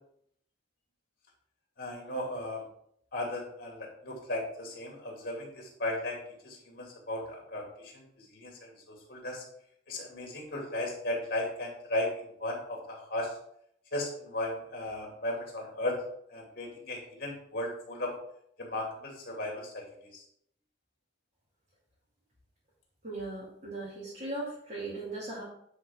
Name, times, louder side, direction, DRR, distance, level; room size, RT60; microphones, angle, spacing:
voice 1, 1.8-2.6 3.1-6.2 6.4-9.4 9.9-13.3 13.9-16.0 16.3-18.1 18.6-19.9 20.1-20.2, left 1 dB, 55° left, -1 dB, 2.5 m, -36 dB
voice 2, 23.0-25.4, right 2 dB, 40° right, -7 dB, 2.3 m, -38 dB
9.8 x 4.4 x 3.6 m, 0.70 s
head